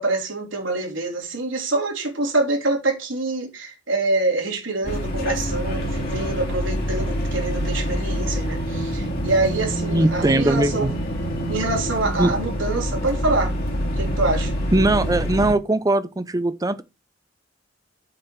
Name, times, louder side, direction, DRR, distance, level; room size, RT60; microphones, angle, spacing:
voice 1, 0.0-10.9 11.5-13.5 14.0-14.5, right 2 dB, 80° right, 3.6 m, -25 dB
sound 1, 4.8-15.5, equal, 50° left, 2.2 m, -26 dB
voice 2, 9.9-10.9 12.2-12.3 14.7-16.8, right 2 dB, 20° right, 0.5 m, -20 dB
7.5 x 5.0 x 5.9 m
head